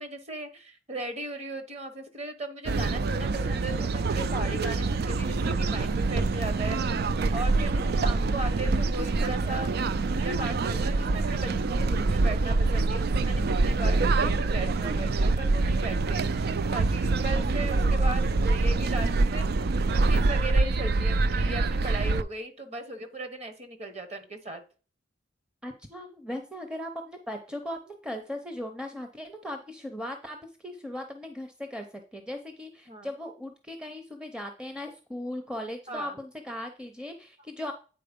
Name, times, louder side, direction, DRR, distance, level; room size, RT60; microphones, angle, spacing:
voice 1, 0.0-6.8 7.3-24.6 32.9-33.1 35.9-36.2, right 2 dB, 35° right, 8 dB, 1.2 m, -37 dB
sound 1, 2.7-22.2, right 3 dB, 55° right, 0.4 m, -25 dB
voice 2, 25.6-37.7, left 1 dB, 5° right, 5 dB, 0.6 m, -38 dB
8.8 x 4.2 x 5.1 m, 0.37 s
head